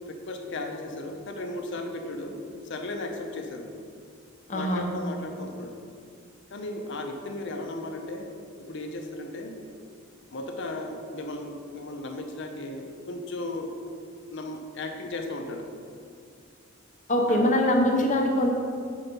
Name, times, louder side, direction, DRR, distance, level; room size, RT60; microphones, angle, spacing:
voice 1, 0.0-3.7 4.5-5.8 6.5-9.6 10.3-13.8 14.3-15.7 17.3-17.6, left 2 dB, 60° left, 4 dB, 0.7 m, -36 dB
voice 2, 4.5-4.8 17.1-18.5, left 1 dB, 40° left, 1 dB, 0.9 m, -23 dB
5.7 x 4.8 x 5.3 m, 2.3 s
head